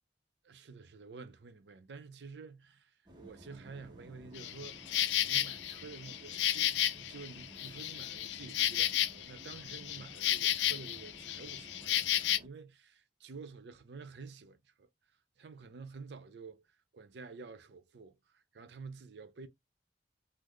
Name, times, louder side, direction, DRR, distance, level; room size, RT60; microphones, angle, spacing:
voice 1, 0.4-4.9 5.2-14.9 15.4-16.7 16.9-19.5, right 4 dB, 70° right, 0.5 m, -50 dB
sound 1, 3.1-12.5, right 1 dB, 25° right, 0.8 m, -55 dB
Insect, 4.4-12.4, left 12 dB, 75° left, 0.3 m, -33 dB
3.0 x 2.0 x 3.7 m
head